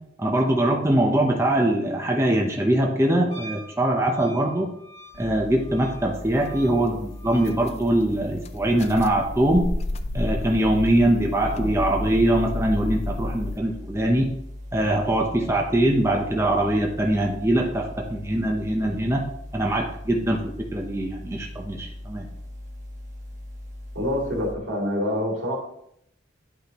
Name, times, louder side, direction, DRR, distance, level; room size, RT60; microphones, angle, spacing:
voice 1, 0.2-4.7 5.2-9.7 10.1-14.3 14.7-19.2 19.5-20.4 20.7-22.3, right 1 dB, 15° right, 0 dB, 0.8 m, -22 dB
Wind instrument woodwind instrument, 3.3-7.6, right 2 dB, 60° right, 1.6 m, -45 dB
sound 1, 5.1-24.5, left 1 dB, 40° right, 1.3 m, -39 dB
sound 2, 6.4-6.6 7.4-7.7 8.2-13.6, left 2 dB, 35° left, 0.4 m, -31 dB
voice 2, 23.9-25.6, left 1 dB, 85° right, -3 dB, 2.6 m, -27 dB
10.5 x 5.1 x 3.0 m, 0.72 s
head